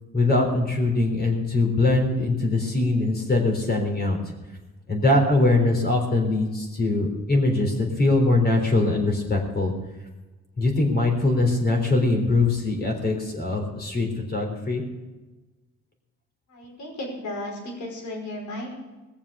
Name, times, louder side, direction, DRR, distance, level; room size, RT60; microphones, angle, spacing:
voice 1, 0.1-4.3 4.9-9.7 10.6-14.8, left 2 dB, 30° left, 2 dB, 3.7 m, -22 dB
voice 2, 16.5-18.7, left 1 dB, 70° left, 0 dB, 5.2 m, -34 dB
19.0 x 7.2 x 6.8 m, 1.2 s
cardioid pair, 90°, 30 cm